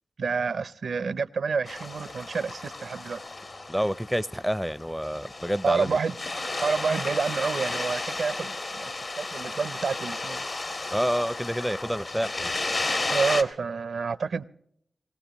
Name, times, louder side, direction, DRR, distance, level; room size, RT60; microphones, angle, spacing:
voice 1, 0.2-3.2 5.6-6.1 6.6-8.9 9.2-10.4 13.1-14.4, right 5 dB, 85° right, 0.5 m, -28 dB
sound 1, 1.6-13.4, left 2 dB, 60° left, 1.6 m, -33 dB
voice 2, 3.7-6.0 10.9-12.5, equal, ahead, 0.5 m, -28 dB
23.5 x 17.5 x 3.0 m
cardioid pair, 55°, 0 cm